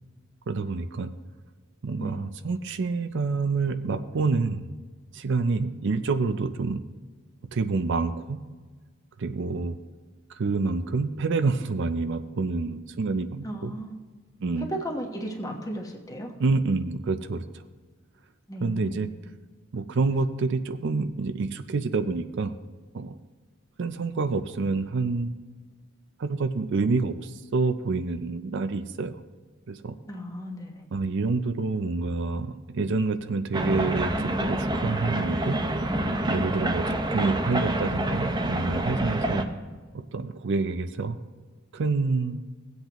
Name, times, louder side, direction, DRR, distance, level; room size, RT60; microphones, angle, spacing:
voice 1, 0.5-1.1 1.8-4.7 5.1-6.8 7.5-8.4 9.2-9.8 10.3-13.7 14.4-14.7 16.4-17.4 18.6-19.1 19.7-22.5 22.9-23.2 23.8-25.3 26.2-29.2 29.7-30.0 30.9-35.6 36.3-39.5 39.9-41.2 41.7-42.4, right 3 dB, 60° right, 10 dB, 0.5 m, -27 dB
voice 2, 13.4-14.0 14.6-16.3 18.5-19.0 30.1-30.9, equal, 15° left, 2 dB, 1.1 m, -35 dB
sound 1, 33.5-39.4, right 1 dB, 20° right, 0.6 m, -27 dB
17.5 x 8.0 x 3.0 m, 1.4 s
head